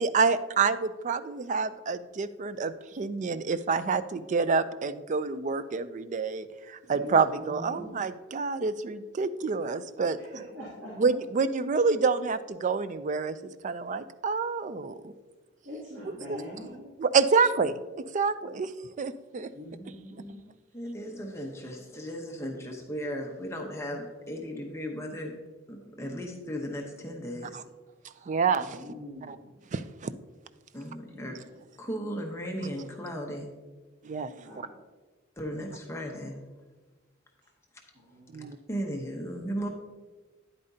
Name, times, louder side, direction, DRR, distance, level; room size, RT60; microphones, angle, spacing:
voice 1, 0.0-10.2 11.0-13.4 13.6-15.1 16.1-16.4 17.0-17.7 18.1-18.7 19.0-19.5 27.5-27.6 28.3-28.8 29.3-29.4 29.7-30.1 34.0-34.3 38.3-38.6, right 5 dB, 40° right, 13 dB, 0.4 m, -27 dB
voice 2, 6.9-7.9 10.2-11.0 15.6-16.9 19.5-20.4 21.1-21.5 28.7-29.5 31.1-31.5 34.4-34.8 37.9-38.4, equal, 85° right, -7 dB, 2.4 m, -43 dB
voice 3, 20.7-25.3 25.7-27.5 30.7-31.4 31.8-33.5 35.4-36.4 38.7-39.7, equal, 15° left, 1 dB, 0.9 m, -36 dB
9.8 x 8.5 x 2.7 m, 1.3 s
head